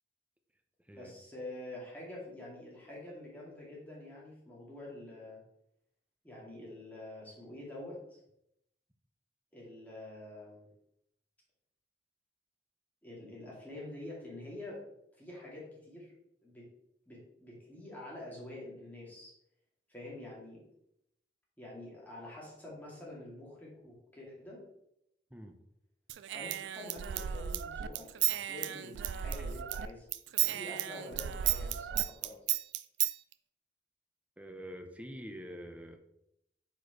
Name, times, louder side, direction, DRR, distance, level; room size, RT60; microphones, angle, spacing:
voice 1, 0.9-5.4 6.2-8.2 9.5-10.7 13.0-14.8 15.2-16.1 16.4-16.7 17.1-19.3 19.9-20.6 21.6-24.6 26.3-30.1 30.4-32.4, left 1 dB, 10° left, -5 dB, 2.2 m, -47 dB
Human voice / Scissors, 26.1-29.9 30.1-33.1, right 12 dB, 85° right, 0.3 m, -34 dB
voice 2, 34.4-36.0, equal, 10° right, 5 dB, 0.5 m, -46 dB
4.9 x 4.5 x 4.5 m, 0.78 s
head